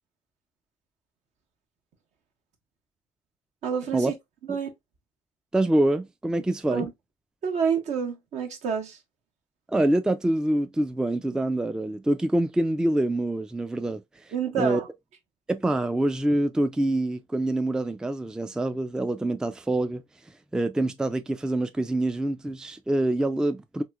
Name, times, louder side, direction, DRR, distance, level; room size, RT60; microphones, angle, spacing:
voice 1, 3.6-4.1 4.5-4.7 6.7-6.9 7.4-9.0 14.3-14.9, right 6 dB, 70° right, 1.1 m, -28 dB
voice 2, 5.5-6.9 9.7-14.0 14.5-14.8 15.5-20.0 20.5-23.8, right 1 dB, 5° right, 0.3 m, -25 dB
3.0 x 3.0 x 2.3 m
cardioid pair, 90°, 13 cm